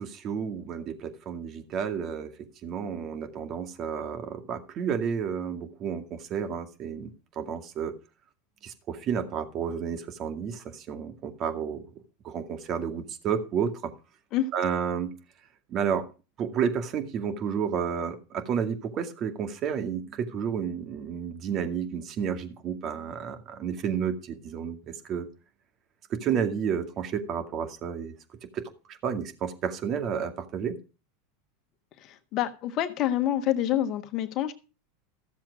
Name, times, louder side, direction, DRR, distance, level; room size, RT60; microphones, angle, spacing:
voice 1, 0.0-2.3 2.6-7.1 7.4-7.9 8.6-11.8 12.2-13.9 14.5-15.1 15.7-16.1 16.4-25.3 26.1-28.1 28.5-28.6 28.9-30.8, right 7 dB, 40° right, 7 dB, 2.2 m, -31 dB
voice 2, 32.1-34.5, left 11 dB, 45° left, 10 dB, 1.3 m, -27 dB
14.5 x 7.4 x 4.9 m, 0.33 s
hypercardioid pair, 95°, 0 cm